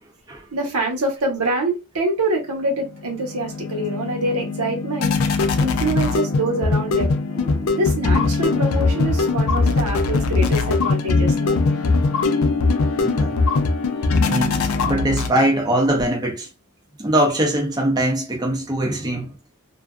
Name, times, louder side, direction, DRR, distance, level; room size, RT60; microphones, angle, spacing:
voice 1, 0.5-7.1 7.7-11.6, right 1 dB, 90° right, 1.0 m, -25 dB
sound 1, 2.9-15.7, left 3 dB, 70° left, 0.4 m, -21 dB
voice 2, 7.3-7.8 13.0-13.4 14.2-16.5 17.0-19.3, right 1 dB, 20° right, 0.5 m, -22 dB
2.5 x 2.4 x 2.2 m
head